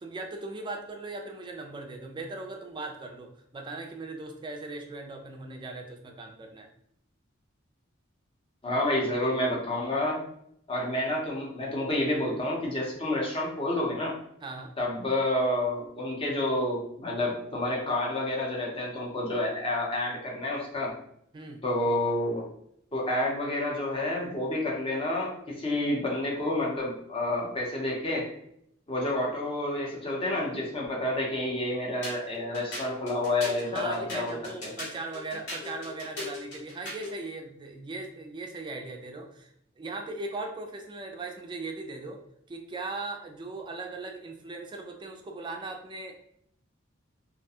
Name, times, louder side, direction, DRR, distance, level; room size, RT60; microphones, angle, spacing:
voice 1, 0.0-6.7 14.4-14.7 21.3-21.6 33.6-42.2 42.5-46.2, right 3 dB, 25° right, 3 dB, 0.3 m, -39 dB
voice 2, 8.6-10.2 10.7-14.1 14.8-20.9 21.6-22.4 22.9-28.3 28.9-34.4 34.6-34.7, left 1 dB, 25° left, -3 dB, 0.7 m, -29 dB
sound 1, 32.0-37.2, left 2 dB, 55° left, 1.1 m, -39 dB
2.3 x 2.2 x 2.7 m, 0.71 s
head